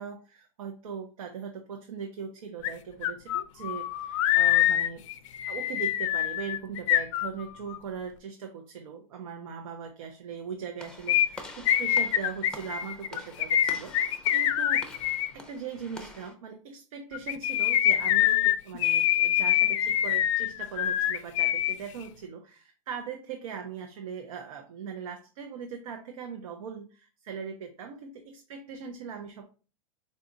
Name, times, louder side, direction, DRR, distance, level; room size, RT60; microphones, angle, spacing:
voice 1, 0.0-5.0 5.5-14.9 15.3-29.5, right 6 dB, 75° right, 4 dB, 0.6 m, -40 dB
sound 1, 2.6-2.7 3.0-7.8 11.1-15.3 17.1-21.7 22.0-22.1, left 12 dB, 60° left, 0.4 m, -25 dB
Walk footsteps / Slam, 10.8-16.3, left 2 dB, 5° left, 0.5 m, -46 dB
4.1 x 2.3 x 3.8 m, 0.35 s
hypercardioid pair, 125°, 18 cm